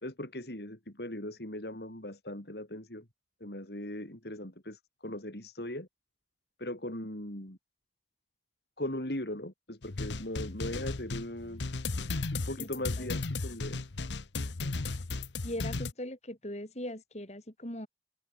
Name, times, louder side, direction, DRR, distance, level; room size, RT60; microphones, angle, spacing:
voice 1, 0.0-3.0 3.4-5.9 6.6-7.6 8.8-11.6 12.3-13.8, left 1 dB, 65° left, 4.6 m, -39 dB
sound 1, 9.8-15.9, left 3 dB, 90° left, 1.0 m, -35 dB
voice 2, 15.4-17.9, left 1 dB, 40° left, 7.4 m, -40 dB
head